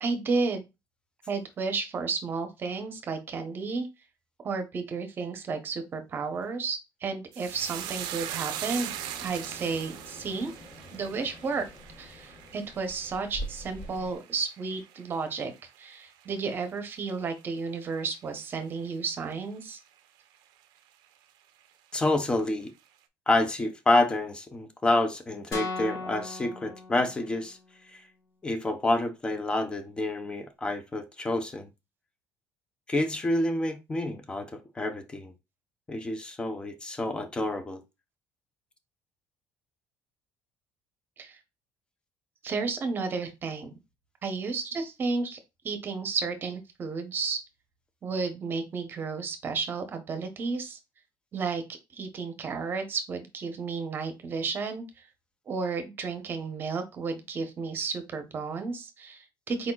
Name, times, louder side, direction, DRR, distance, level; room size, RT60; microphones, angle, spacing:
voice 1, 0.0-0.7 1.3-3.9 4.4-8.9 9.2-10.5 10.9-11.6 12.0-15.5 15.8-19.8 41.2-41.4 42.4-43.7 44.2-45.4 45.6-47.4 48.0-50.8 51.3-51.6 51.9-55.1 55.5-59.7, right 4 dB, 30° right, 0.9 m, -32 dB
sound 1, 7.3-15.9 16.2-16.9 17.2-17.4, right 11 dB, 75° right, 0.6 m, -40 dB
sound 2, 7.5-14.2, equal, 30° left, 1.6 m, -45 dB
voice 2, 21.9-22.7 23.3-27.6 27.9-28.0 28.4-31.7 32.9-35.3 35.9-37.8, left 2 dB, 15° left, 0.6 m, -28 dB
sound 3, 25.5-27.6, left 3 dB, 50° left, 2.0 m, -37 dB
4.6 x 4.2 x 2.3 m
cardioid pair, 170°, 7 cm